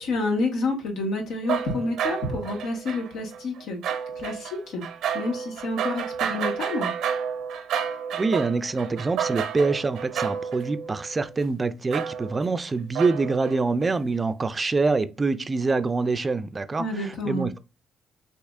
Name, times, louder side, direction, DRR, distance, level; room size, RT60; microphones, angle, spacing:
voice 1, 0.0-3.8 4.2-4.8 5.1-6.9 16.8-17.5, left 2 dB, 85° left, 1.4 m, -29 dB
sound 1, 1.4-11.4 11.9-12.5 12.9-13.9, right 8 dB, 85° right, 0.7 m, -31 dB
voice 2, 8.1-17.6, right 3 dB, 30° right, 0.4 m, -25 dB
6.4 x 2.9 x 2.4 m
cardioid pair, 90°, 0 cm